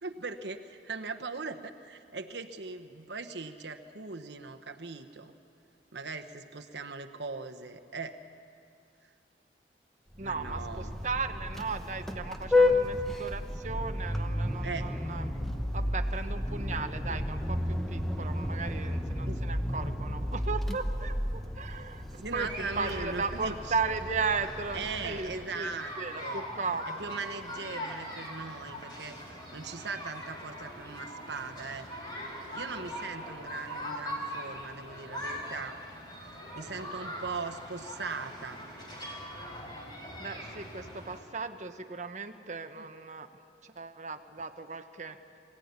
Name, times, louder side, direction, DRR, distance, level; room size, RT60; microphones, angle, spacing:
voice 1, 0.0-5.3 5.9-8.2 10.2-10.9 14.6-14.9 19.3-19.5 22.1-23.7 24.7-25.9 26.2-26.5 26.9-29.2 29.5-31.9 32.5-35.8 36.6-38.7 42.8-42.9, right 4 dB, 75° right, 6 dB, 1.1 m, -39 dB
Vehicle horn car horn honking, 10.1-25.5, left 1 dB, ahead, 1.1 m, -32 dB
voice 2, 10.2-15.4 15.7-27.0 40.2-43.3 43.6-45.2, right 4 dB, 40° right, 7 dB, 1.1 m, -36 dB
sound 1, 22.4-41.2, equal, 25° left, 4.7 m, -42 dB
23.5 x 16.0 x 9.6 m, 2.4 s
head